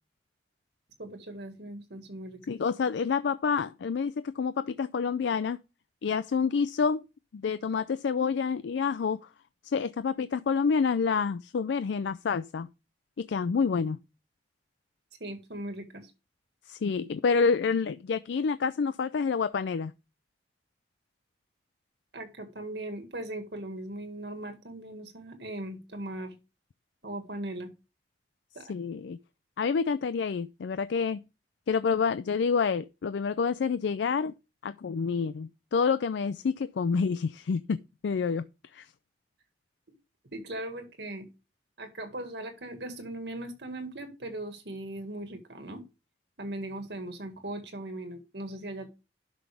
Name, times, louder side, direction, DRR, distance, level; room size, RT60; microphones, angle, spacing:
voice 1, 1.0-2.5 15.2-16.1 22.1-26.3 27.0-27.7 28.6-28.7 40.2-41.3 41.8-45.8 46.4-48.9, right 1 dB, 70° right, 1.9 m, -39 dB
voice 2, 2.5-5.6 6.0-7.0 7.3-9.2 9.6-12.7 13.2-14.0 16.7-19.9 28.7-29.2 29.6-31.2 31.7-34.3 34.6-38.5 38.7-38.9, left 5 dB, 80° left, 0.4 m, -28 dB
11.0 x 6.1 x 3.4 m
head